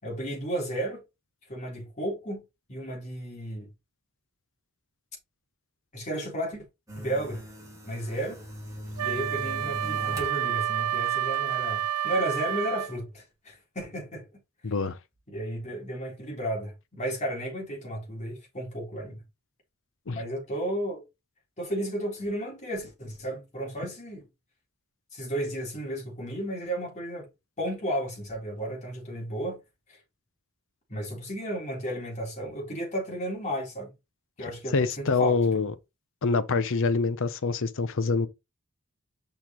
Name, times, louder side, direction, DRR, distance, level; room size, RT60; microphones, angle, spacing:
voice 1, 0.0-1.0 1.5-3.7 5.9-6.7 7.0-7.4 7.9-8.4 9.0-14.3 15.3-19.2 20.1-21.1 21.6-24.3 25.1-27.3 27.6-29.6 29.9-30.0 30.9-33.9 34.4-35.6, right 1 dB, 35° left, 3.5 m, -33 dB
sound 1, 6.9-10.4 10.8-11.5, equal, 15° right, 2.6 m, -39 dB
Wind instrument woodwind instrument, 9.0-13.0, right 10 dB, 85° right, 0.4 m, -29 dB
voice 2, 14.6-15.0 20.1-20.2 34.4-35.7 36.2-38.3, left 4 dB, 60° left, 0.7 m, -26 dB
6.7 x 5.7 x 3.0 m
head